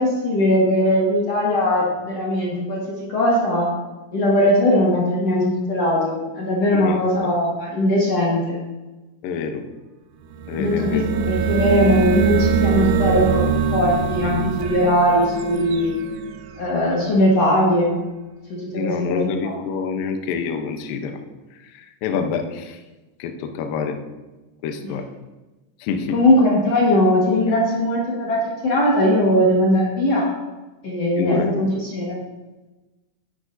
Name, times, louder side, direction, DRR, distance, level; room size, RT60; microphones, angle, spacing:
voice 1, 0.0-3.7 4.1-8.6 10.6-15.9 16.6-18.0 18.5-19.5 24.8-24.9 26.1-28.4 28.6-30.2 30.8-32.2, left 1 dB, 65° left, -5 dB, 1.6 m, -19 dB
voice 2, 6.7-7.3 9.2-9.6 10.5-11.0 18.8-21.2 21.7-22.8 23.2-24.0 24.6-25.0 25.8-26.2 31.2-31.6, left 6 dB, 85° left, 5 dB, 2.0 m, -27 dB
sound 1, 10.3-17.0, right 6 dB, 80° right, 2.2 m, -23 dB
12.5 x 9.9 x 2.7 m, 1.1 s
omnidirectional pair, 5.4 m